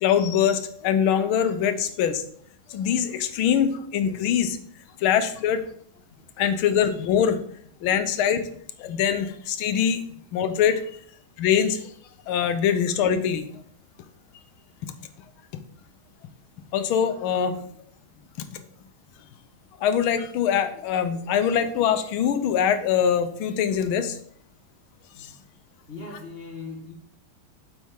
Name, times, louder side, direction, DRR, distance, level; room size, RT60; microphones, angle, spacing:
voice 1, 0.0-2.2 2.7-4.6 5.0-5.6 6.4-7.4 7.8-8.4 8.8-10.0 10.3-10.8 11.4-11.9 12.3-13.4 16.7-17.6 19.8-24.2 25.2-25.3, left 8 dB, 80° left, 9 dB, 1.6 m, -23 dB
voice 2, 25.9-26.9, left 3 dB, 30° left, -1 dB, 1.5 m, -39 dB
7.8 x 5.3 x 3.6 m, 0.62 s
omnidirectional pair, 2.3 m